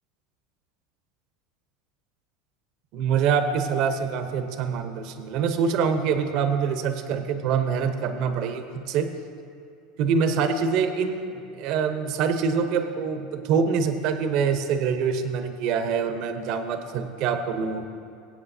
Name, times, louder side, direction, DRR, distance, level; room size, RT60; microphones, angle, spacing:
voice 1, 2.9-9.1 10.0-17.9, right 6 dB, 60° right, 8 dB, 0.9 m, -25 dB
21.0 x 8.4 x 2.7 m, 2.5 s
supercardioid pair, 110°, 0 cm